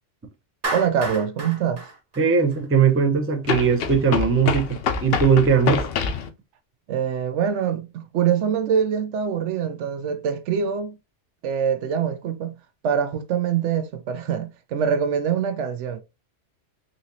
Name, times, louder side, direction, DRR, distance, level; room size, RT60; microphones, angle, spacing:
Clapping, 0.6-2.9, right 2 dB, 35° right, 0.9 m, -32 dB
voice 1, 0.7-1.8 6.9-10.9 11.4-12.6 12.8-16.0, right 7 dB, 75° right, 0.9 m, -24 dB
sound 1, 1.0-1.1 3.5-6.3, left 6 dB, 60° left, 0.7 m, -26 dB
voice 2, 2.2-5.8, right 6 dB, 20° right, 0.4 m, -19 dB
4.0 x 2.8 x 2.6 m
omnidirectional pair, 1.2 m